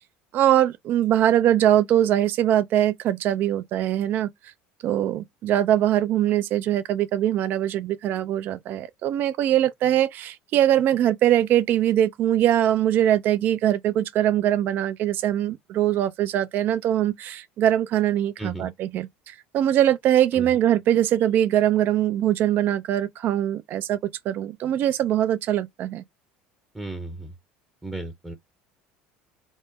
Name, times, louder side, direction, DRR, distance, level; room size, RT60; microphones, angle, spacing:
voice 1, 0.3-4.3 4.8-24.0 24.3-26.0, right 11 dB, 55° right, 0.5 m, -22 dB
voice 2, 18.4-18.7 20.3-20.5 26.7-27.3 27.8-28.3, right 2 dB, 10° right, 0.8 m, -34 dB
4.1 x 2.1 x 3.6 m
supercardioid pair, 105°, 4 cm